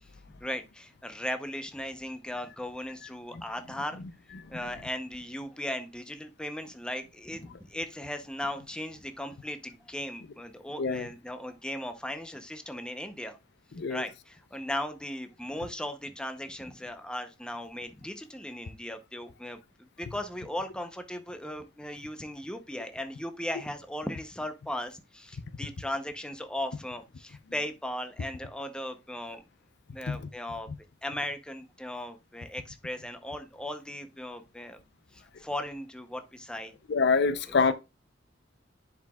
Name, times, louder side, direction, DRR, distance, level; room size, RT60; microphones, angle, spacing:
voice 1, 0.4-4.0 4.5-13.4 13.9-19.6 20.0-29.4 29.9-30.7 31.0-34.8 35.1-36.7 37.5-37.7, left 1 dB, 5° left, 0.7 m, -37 dB
voice 2, 36.9-37.7, left 4 dB, 60° left, 0.5 m, -25 dB
10.5 x 4.8 x 2.3 m
head